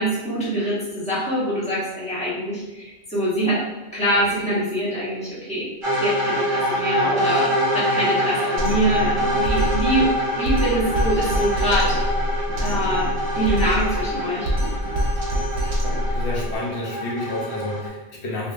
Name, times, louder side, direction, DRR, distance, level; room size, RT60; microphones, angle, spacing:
voice 1, 0.0-3.6 3.9-5.7 6.0-10.1 10.4-12.0 12.6-14.5, right 1 dB, 5° left, -9 dB, 1.0 m, -24 dB
sound 1, 4.1-5.4, right 1 dB, 55° left, 0.9 m, -37 dB
sound 2, 5.8-17.9, equal, 35° right, 0.7 m, -25 dB
Drum kit, 8.6-16.6, equal, 80° right, 0.9 m, -25 dB
voice 2, 15.6-18.5, left 1 dB, 85° left, -4 dB, 1.1 m, -30 dB
3.3 x 2.6 x 2.5 m, 1.1 s
omnidirectional pair, 1.1 m